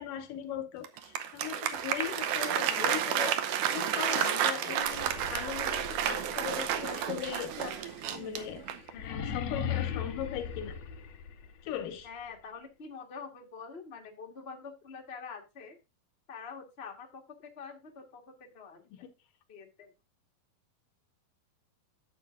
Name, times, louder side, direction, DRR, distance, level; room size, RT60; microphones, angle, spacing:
voice 1, 0.0-3.4 3.7-8.6 8.9-10.8 11.6-12.1 18.9-19.1, left 10 dB, 80° left, 2.5 m, -39 dB
Applause, 0.8-9.0, right 9 dB, 75° right, 2.1 m, -31 dB
sound 1, 4.8-11.7, left 8 dB, 65° left, 1.8 m, -39 dB
voice 2, 12.0-15.8 16.3-18.8 19.5-19.9, left 5 dB, 50° left, 0.7 m, -46 dB
11.5 x 7.6 x 2.6 m
omnidirectional pair, 4.0 m